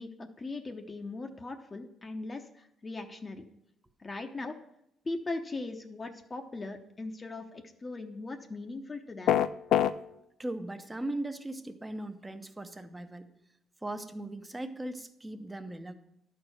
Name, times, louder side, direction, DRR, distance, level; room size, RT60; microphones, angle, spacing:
voice 1, 0.0-3.5 4.0-4.5 5.0-9.4, left 2 dB, 30° left, 5 dB, 0.8 m, -39 dB
sound 1, 9.3-9.9, left 10 dB, 75° left, 0.4 m, -23 dB
voice 2, 10.4-13.3 13.8-15.9, right 1 dB, 15° right, 8 dB, 0.8 m, -38 dB
11.5 x 4.6 x 6.4 m, 0.80 s
cardioid pair, 90°, 0 cm